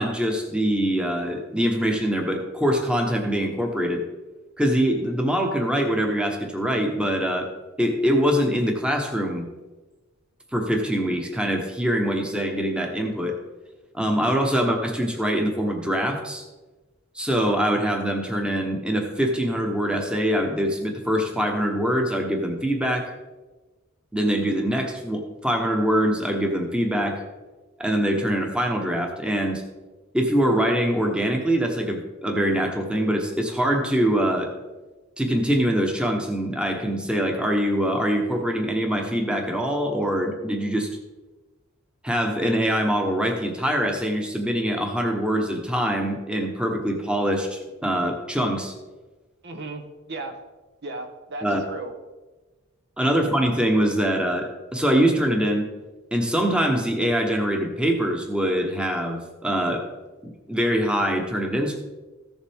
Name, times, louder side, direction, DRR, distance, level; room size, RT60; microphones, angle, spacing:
voice 1, 0.0-4.0 4.6-7.5 7.8-9.5 10.5-13.4 13.9-16.4 17.1-23.1 24.1-27.2 27.8-29.6 30.1-34.5 35.2-40.9 42.0-48.7 51.4-51.6 53.0-55.7 56.1-59.8 60.2-61.8, equal, 5° right, 3 dB, 1.0 m, -24 dB
voice 2, 49.4-50.4 50.8-51.9 53.0-53.1, right 2 dB, 55° right, 6 dB, 0.9 m, -36 dB
14.5 x 7.3 x 3.6 m, 1.2 s
head